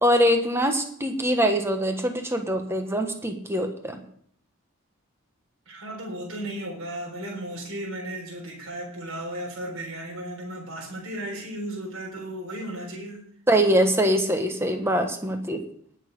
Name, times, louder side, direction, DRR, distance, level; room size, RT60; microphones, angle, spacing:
voice 1, 0.0-4.0 13.5-15.6, equal, 10° right, 5 dB, 1.2 m, -23 dB
voice 2, 5.7-13.2, right 1 dB, 70° right, -3 dB, 4.0 m, -35 dB
19.0 x 6.6 x 5.2 m, 0.63 s
head